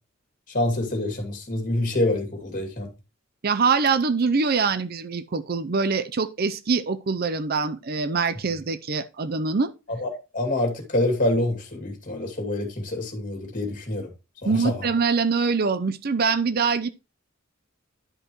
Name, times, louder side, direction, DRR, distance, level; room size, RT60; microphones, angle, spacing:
voice 1, 0.5-2.9 9.9-14.1 14.4-14.9, left 1 dB, 40° left, 2.5 m, -26 dB
voice 2, 3.4-9.7 14.4-16.9, right 5 dB, 50° right, 0.6 m, -24 dB
11.0 x 5.3 x 3.0 m
head